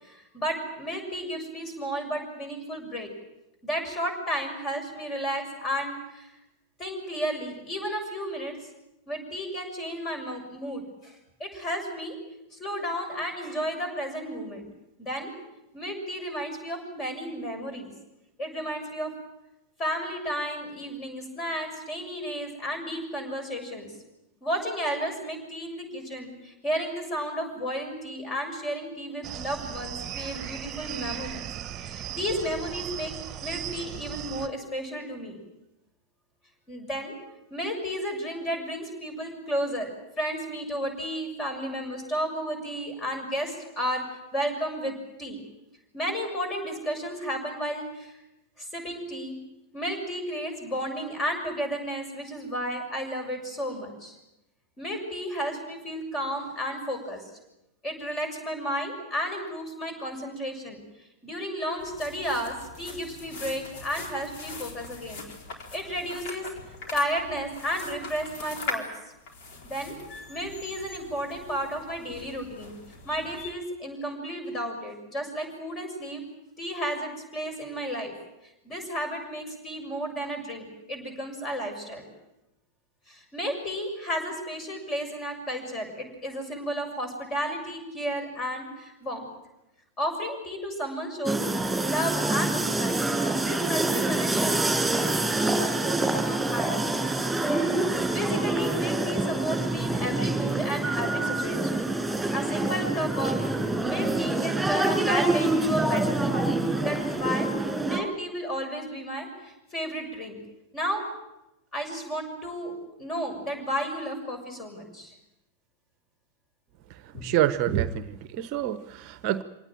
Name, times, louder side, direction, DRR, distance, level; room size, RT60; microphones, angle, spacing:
voice 1, 0.0-3.1 3.6-6.3 6.8-8.6 9.1-12.1 12.5-14.7 15.0-15.3 15.7-17.9 18.4-19.1 19.8-23.9 24.4-31.5 31.8-33.1 33.4-35.4 36.7-37.1 37.5-45.4 45.9-48.1 48.6-49.4 49.7-54.2 54.8-57.3 57.8-60.8 61.2-65.2 65.7-66.5 66.9-68.9 69.6-69.9 70.3-72.8 73.0-76.2 76.6-78.1 78.6-82.1 83.1-89.3 90.0-91.4 91.8-92.9 93.4-96.7 98.1-101.9 102.3-103.4 103.8-106.4 106.8-107.5 107.8-110.4 110.7-111.0 111.7-115.1 117.1-117.3, equal, 25° left, 6 dB, 7.0 m, -33 dB
sound 1, 29.2-34.5, right 11 dB, 25° right, 1.4 m, -37 dB
sound 2, 61.8-73.5, left 3 dB, 50° left, 4.1 m, -41 dB
sound 3, 91.2-108.0, right 2 dB, 5° right, 6.4 m, -26 dB
voice 2, 116.9-119.4, right 12 dB, 40° right, 13 dB, 0.9 m, -27 dB
25.5 x 18.5 x 9.1 m, 0.92 s
figure-of-eight pair, 90°, 0 cm